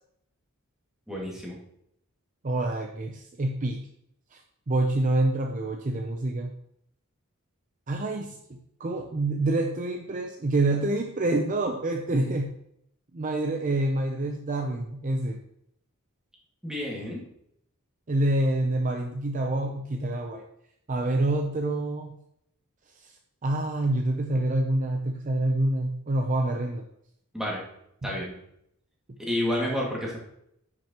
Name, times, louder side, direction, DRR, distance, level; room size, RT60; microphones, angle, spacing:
voice 1, 1.1-1.6 16.6-17.2 27.3-27.6 28.0-28.4 29.2-30.2, left 1 dB, 5° right, -4 dB, 2.0 m, -30 dB
voice 2, 2.4-3.9 4.3-4.4 4.7-6.5 7.9-12.5 13.1-15.4 18.1-20.5 20.9-22.1 23.0-23.1 23.4-26.8 28.0-28.1, right 2 dB, 35° right, 4 dB, 0.6 m, -27 dB
10.0 x 6.2 x 2.9 m, 0.74 s
head